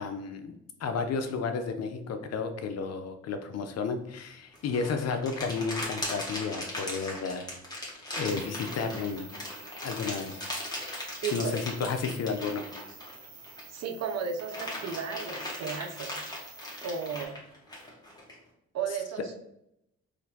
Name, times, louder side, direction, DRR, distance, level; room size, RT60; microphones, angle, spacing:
voice 1, 0.0-7.5 8.2-9.3 9.8-10.4 11.3-12.6, left 5 dB, 55° left, 7 dB, 0.6 m, -32 dB
sound 1, 4.5-13.8 14.2-18.3, left 1 dB, 15° left, 1.2 m, -38 dB
sound 2, 8.2-17.2, right 5 dB, 80° right, 1.0 m, -50 dB
voice 2, 11.2-11.6 13.7-16.3 16.8-17.4 18.7-19.3, right 6 dB, 60° right, 5 dB, 0.6 m, -34 dB
4.1 x 2.6 x 2.7 m, 0.80 s
cardioid pair, 90°, 30 cm